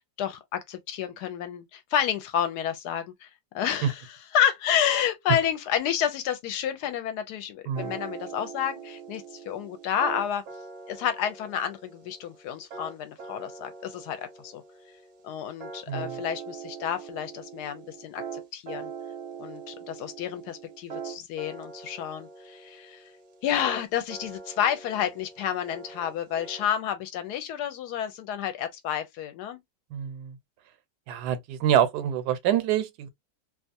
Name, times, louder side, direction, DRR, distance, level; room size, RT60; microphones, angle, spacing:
voice 1, 0.2-3.3 3.5-10.4 10.9-14.6 15.2-18.9 19.4-23.0 23.4-29.6, left 9 dB, 85° left, 1.1 m, -30 dB
sound 1, 7.7-26.7, right 6 dB, 55° right, 1.0 m, -42 dB
voice 2, 15.9-16.2 29.9-30.4 31.1-33.1, right 10 dB, 90° right, 1.2 m, -26 dB
2.7 x 2.4 x 2.5 m
omnidirectional pair, 1.7 m